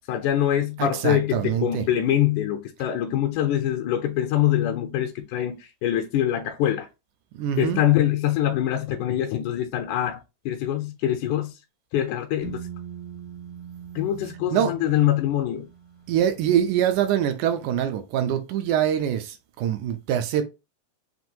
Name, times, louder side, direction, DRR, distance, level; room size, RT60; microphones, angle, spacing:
voice 1, 0.1-6.9 7.6-11.5 11.9-12.6 14.0-15.7, left 11 dB, 80° left, 1.8 m, -24 dB
voice 2, 0.8-1.9 7.4-7.8 14.5-14.7 16.1-20.4, right 10 dB, 80° right, 1.8 m, -24 dB
sound 1, 12.4-16.3, right 7 dB, 30° right, 0.4 m, -41 dB
5.9 x 2.5 x 2.7 m
omnidirectional pair, 3.9 m